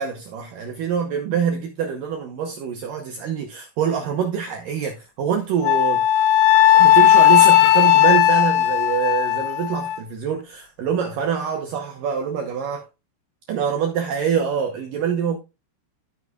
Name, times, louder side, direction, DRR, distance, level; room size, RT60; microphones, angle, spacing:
voice 1, 0.0-6.0 6.7-12.9 13.5-15.4, right 7 dB, 85° right, 1.9 m, -25 dB
Wind instrument woodwind instrument, 5.6-10.0, left 12 dB, 85° left, 2.7 m, -15 dB
13.5 x 6.4 x 2.3 m
omnidirectional pair, 5.2 m